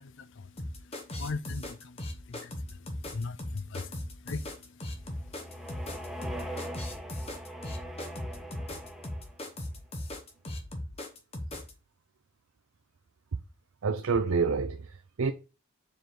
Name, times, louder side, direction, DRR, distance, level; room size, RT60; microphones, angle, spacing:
voice 1, 0.0-6.6, left 4 dB, 55° left, 0.5 m, -42 dB
sound 1, 0.6-11.7, left 1 dB, 25° left, 1.2 m, -38 dB
sound 2, 4.9-9.6, equal, ahead, 0.8 m, -41 dB
voice 2, 13.8-15.3, right 5 dB, 70° right, 0.5 m, -28 dB
6.9 x 4.9 x 3.8 m
head